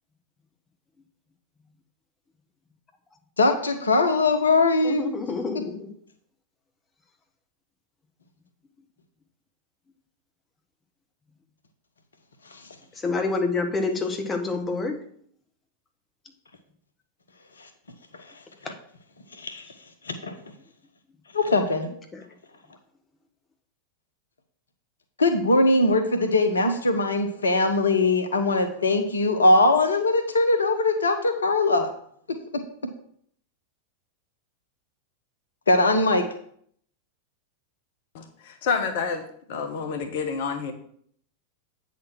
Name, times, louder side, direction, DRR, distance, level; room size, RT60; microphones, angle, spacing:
voice 1, 3.4-5.1 12.5-12.6 17.6-17.7 18.6-18.7 19.3-19.6 20.0-20.4 21.3-21.9 25.2-31.9 32.3-32.6 35.7-36.3, left 2 dB, 70° left, 6 dB, 0.9 m, -21 dB
voice 2, 4.8-5.9 13.0-15.0, left 3 dB, 20° left, 4 dB, 1.2 m, -27 dB
voice 3, 38.1-40.7, left 5 dB, 50° left, 7 dB, 1.0 m, -29 dB
8.6 x 4.2 x 6.0 m, 0.63 s
figure-of-eight pair, 90°, 0 cm